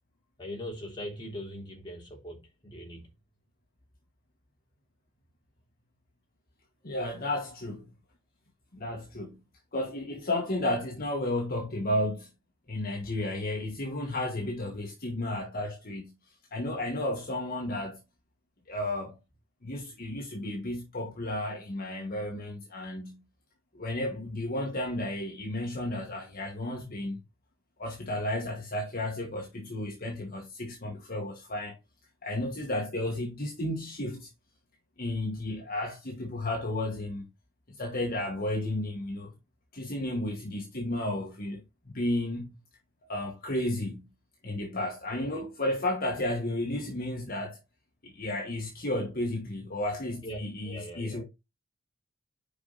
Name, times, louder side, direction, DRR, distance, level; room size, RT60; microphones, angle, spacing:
voice 1, 0.4-3.1 45.1-45.4 50.2-50.4 50.6-51.2, equal, 20° left, 3.5 m, -41 dB
voice 2, 6.8-7.9 8.7-9.4 9.7-12.3 12.7-16.1 16.5-18.0 18.7-19.2 19.6-23.2 23.7-27.2 27.8-31.8 32.2-34.3 35.0-37.3 37.7-39.3 39.7-42.6 43.1-44.1 44.4-47.6 48.0-51.2, left 1 dB, 45° left, 1.5 m, -33 dB
6.8 x 5.3 x 4.0 m
head